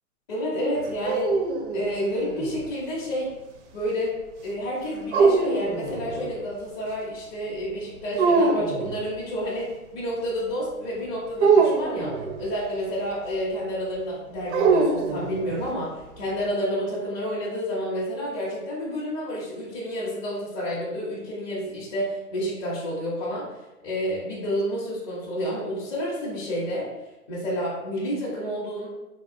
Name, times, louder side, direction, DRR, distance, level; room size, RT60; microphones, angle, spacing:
voice 1, 0.3-1.3 1.7-3.3 3.7-4.1 4.4-12.1 12.4-23.4 23.8-26.9 27.3-28.9, equal, 20° left, -9 dB, 0.5 m, -29 dB
sound 1, 0.8-2.6 5.1-6.4 8.2-9.0 11.4-12.5 14.5-15.7, right 4 dB, 50° right, 0.5 m, -23 dB
3.5 x 2.3 x 2.4 m, 0.99 s
hypercardioid pair, 135°, 45 cm